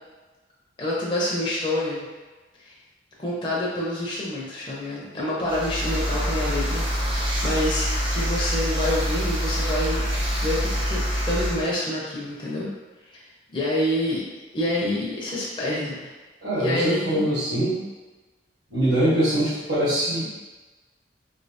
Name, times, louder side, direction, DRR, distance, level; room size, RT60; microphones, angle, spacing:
voice 1, 0.8-2.0 2.6-2.7 3.2-10.0 10.4-12.7 13.1-13.2 13.5-14.2 14.5-16.1 16.6-17.3, left 1 dB, 25° left, -6 dB, 0.6 m, -27 dB
sound 1, 5.5-11.6, equal, 30° right, 0.7 m, -25 dB
voice 2, 16.4-17.8 18.7-20.3, right 1 dB, 65° right, -14 dB, 1.5 m, -23 dB
3.1 x 2.9 x 2.8 m, 1.2 s
head